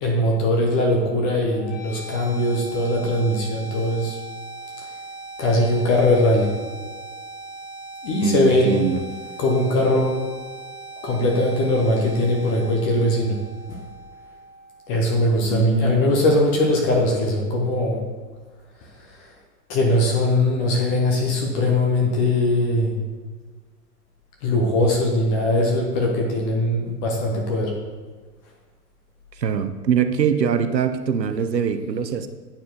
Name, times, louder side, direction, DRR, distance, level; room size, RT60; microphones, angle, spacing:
voice 1, 0.0-4.2 5.4-6.6 8.0-8.8 9.4-10.2 11.0-13.4 13.7-13.8 14.9-18.1 18.8-19.3 19.7-23.0 24.4-27.8, left 1 dB, 15° left, 0 dB, 0.3 m, -21 dB
sound 1, 1.5-15.5, right 2 dB, 85° left, 2.4 m, -39 dB
voice 2, 8.2-9.0 15.5-16.0 29.4-32.3, right 7 dB, 90° right, 10 dB, 0.8 m, -22 dB
9.1 x 4.3 x 4.4 m, 1.4 s
hypercardioid pair, 110°, 48 cm